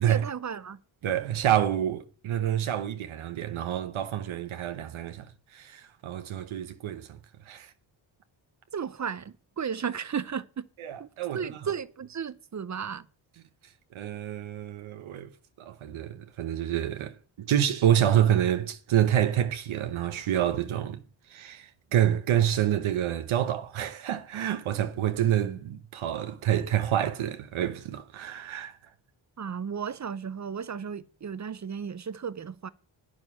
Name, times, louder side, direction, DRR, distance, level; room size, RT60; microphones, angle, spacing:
voice 1, 0.1-0.8 8.7-10.7 11.0-13.1 29.4-32.7, right 7 dB, 35° right, 0.7 m, -34 dB
voice 2, 1.0-5.3 5.5-7.2 7.5-7.7 10.9-11.4 13.9-15.3 15.6-21.0 21.3-28.8, right 10 dB, 80° right, 1.0 m, -27 dB
9.0 x 6.3 x 8.4 m
cardioid pair, 55°, 48 cm